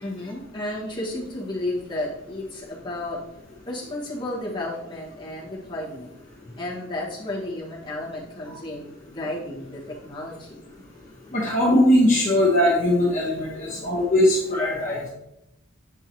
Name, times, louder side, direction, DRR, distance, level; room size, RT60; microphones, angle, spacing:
voice 1, 0.0-3.2 3.7-6.1 6.6-10.6 13.7-14.1, left 1 dB, 20° left, -6 dB, 1.5 m, -33 dB
voice 2, 11.3-15.0, left 1 dB, 40° left, -6 dB, 1.1 m, -20 dB
7.5 x 4.6 x 2.9 m, 0.86 s
head